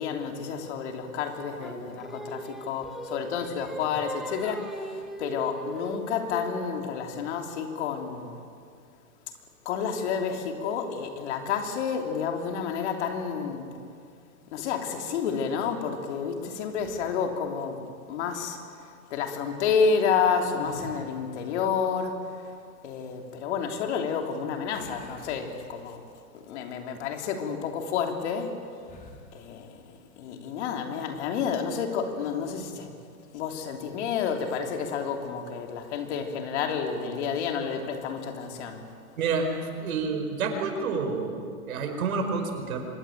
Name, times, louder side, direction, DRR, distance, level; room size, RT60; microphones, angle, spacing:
voice 1, 0.0-8.4 9.6-13.7 14.5-17.8 18.1-18.6 19.1-22.2 22.8-26.0 26.5-28.6 29.3-29.8 30.2-32.9 33.3-38.8, left 6 dB, 50° left, 4 dB, 3.3 m, -30 dB
Singing, 1.6-6.8, equal, ahead, 1.0 m, -39 dB
sound 1, 16.8-17.4 20.3-21.4 24.7-26.1 26.6-26.8 28.8-29.3, left 2 dB, 20° left, 2.9 m, -47 dB
voice 2, 39.2-39.5 39.8-42.8, right 4 dB, 75° right, 5 dB, 4.9 m, -29 dB
25.5 x 20.5 x 9.2 m, 2.4 s
hypercardioid pair, 150°, 43 cm